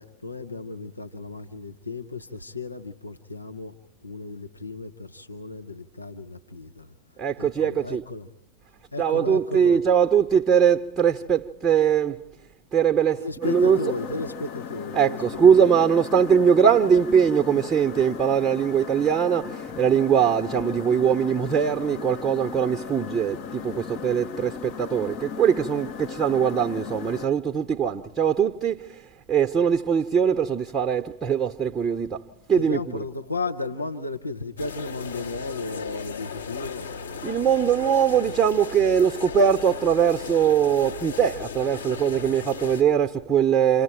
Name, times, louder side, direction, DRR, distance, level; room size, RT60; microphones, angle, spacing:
voice 1, 0.0-3.7 4.0-8.3 8.9-9.8 13.2-15.2 32.6-36.9, left 3 dB, 85° left, 0.9 m, -34 dB
voice 2, 7.2-8.0 9.0-12.1 12.7-13.8 14.9-19.5 19.8-24.5 24.8-28.8 29.3-32.1 32.5-32.8 37.2-43.8, right 8 dB, 15° right, 0.8 m, -21 dB
sound 1, 13.4-27.3, left 7 dB, 40° left, 0.9 m, -37 dB
sound 2, 34.6-42.8, left 6 dB, 70° left, 2.0 m, -36 dB
29.5 x 27.5 x 4.6 m
figure-of-eight pair, 90°, 0 cm